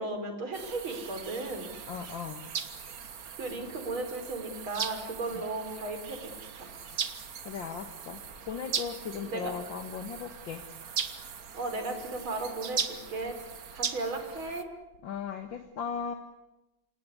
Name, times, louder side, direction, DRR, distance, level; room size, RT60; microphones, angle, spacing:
voice 1, 0.0-1.7 3.4-6.3 6.6-6.7 9.3-9.5 11.5-13.4 13.7-14.7, right 2 dB, 85° right, 6 dB, 4.8 m, -35 dB
sound 1, 0.5-14.6, right 7 dB, 50° right, 1.7 m, -39 dB
voice 2, 1.9-2.4 7.4-10.6 15.0-16.1, left 6 dB, 65° left, 6 dB, 2.2 m, -37 dB
27.5 x 18.5 x 9.8 m, 0.98 s
omnidirectional pair, 2.2 m